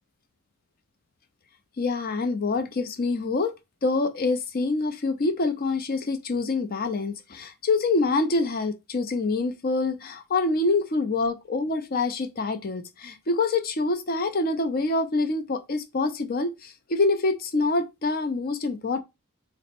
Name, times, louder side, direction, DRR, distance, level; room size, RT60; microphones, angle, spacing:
voice 1, 1.8-3.5 3.8-19.0, left 3 dB, 40° left, 0.5 m, -26 dB
4.1 x 2.1 x 4.2 m
head